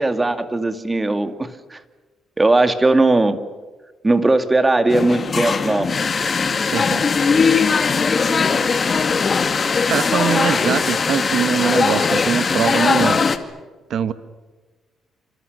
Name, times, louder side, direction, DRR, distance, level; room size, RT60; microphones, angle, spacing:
voice 1, 0.0-1.8 2.4-3.4 4.0-5.9, right 2 dB, 20° right, 9 dB, 2.3 m, -18 dB
sound 1, 4.9-13.4, left 5 dB, 40° left, 2.0 m, -19 dB
voice 2, 6.7-7.1 9.9-13.2 13.9-14.1, right 8 dB, 65° right, 12 dB, 1.4 m, -22 dB
29.0 x 26.0 x 6.8 m, 1.3 s
cardioid pair, 90°, 0 cm